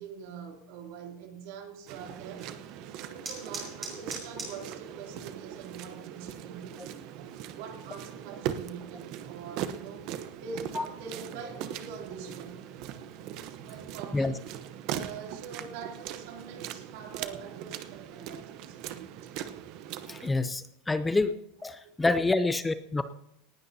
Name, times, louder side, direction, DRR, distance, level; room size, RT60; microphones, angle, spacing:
voice 1, 0.0-7.0 7.5-10.1 10.4-12.7 13.6-14.4 14.9-19.3 21.8-22.0, right 5 dB, 60° right, 2.9 m, -44 dB
sound 1, 1.9-20.3, right 10 dB, 45° right, 0.9 m, -40 dB
sound 2, 2.2-13.4, right 2 dB, 15° right, 5.8 m, -49 dB
voice 2, 20.1-21.3 21.6-23.1, left 3 dB, 10° left, 0.5 m, -27 dB
19.0 x 15.5 x 2.8 m
supercardioid pair, 165°, 0 cm